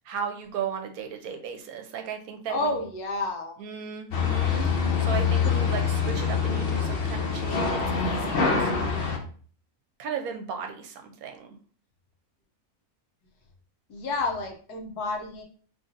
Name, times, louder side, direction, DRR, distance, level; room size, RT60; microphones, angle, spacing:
voice 1, 0.0-2.8 3.6-9.1 10.0-11.6, right 7 dB, 75° right, 5 dB, 1.0 m, -36 dB
voice 2, 2.5-3.6 13.9-15.4, left 2 dB, 90° left, 3 dB, 1.3 m, -30 dB
sound 1, 4.1-9.2, left 6 dB, 60° left, 0.6 m, -25 dB
3.2 x 2.6 x 3.8 m, 0.44 s
omnidirectional pair, 1.6 m